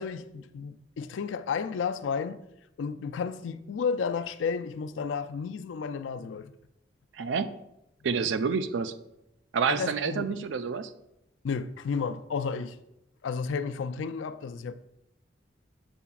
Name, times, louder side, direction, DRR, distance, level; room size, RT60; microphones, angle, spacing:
voice 1, 0.0-2.4 2.8-6.5 9.7-10.4 11.4-12.8 13.2-14.7, left 5 dB, 80° left, 0.4 m, -32 dB
voice 2, 7.2-7.6 8.0-8.9 9.5-10.9, right 5 dB, 75° right, 0.4 m, -28 dB
6.9 x 5.9 x 2.3 m
head